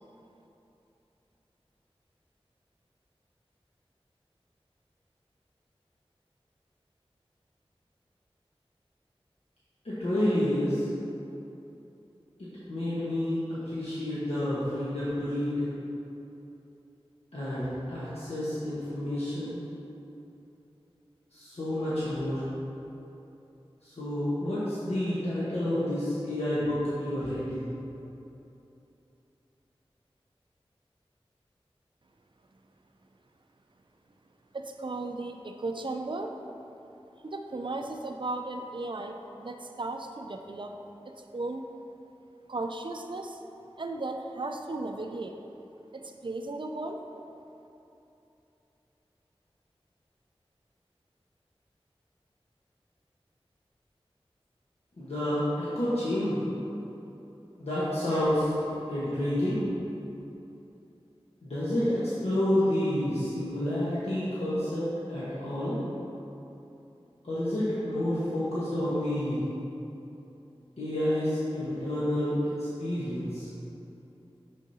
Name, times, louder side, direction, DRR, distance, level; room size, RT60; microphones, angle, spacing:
voice 1, 9.8-10.9 12.4-15.7 17.3-19.6 21.3-22.4 23.8-27.6 55.0-56.4 57.6-58.5 58.9-59.6 61.4-65.8 67.2-69.4 70.8-73.5, left 1 dB, 85° left, -12 dB, 1.2 m, -29 dB
voice 2, 34.5-36.3 37.2-40.8 41.1-41.7 42.5-43.4 43.8-45.4 45.9-47.0, right 2 dB, 50° right, 5 dB, 0.4 m, -35 dB
6.3 x 6.3 x 2.8 m, 2.9 s
wide cardioid pair, 50°, 10 cm